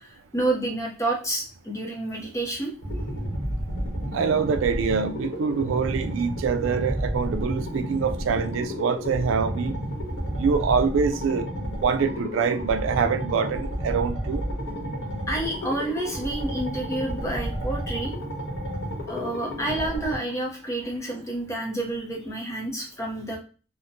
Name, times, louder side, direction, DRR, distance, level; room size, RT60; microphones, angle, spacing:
voice 1, 0.0-2.7 15.3-18.1 19.1-23.4, right 2 dB, 15° left, 0.6 m, -29 dB
sound 1, 2.8-20.2, equal, 70° left, 1.1 m, -31 dB
voice 2, 4.1-9.7 10.4-11.5 11.8-14.4, right 5 dB, 85° right, 0.3 m, -25 dB
2.9 x 2.1 x 2.5 m
head